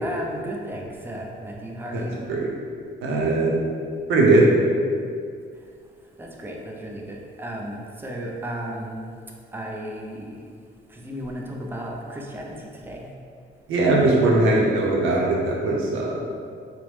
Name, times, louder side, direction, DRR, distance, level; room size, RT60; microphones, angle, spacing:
voice 1, 0.0-2.2 6.2-9.0 9.5-10.4 10.9-13.1, right 1 dB, 10° right, -1 dB, 0.4 m, -34 dB
voice 2, 3.0-3.6 4.1-4.4 13.7-16.2, right 2 dB, 85° right, -3 dB, 0.6 m, -19 dB
2.9 x 2.1 x 3.1 m, 2.2 s
cardioid pair, 90°, 20 cm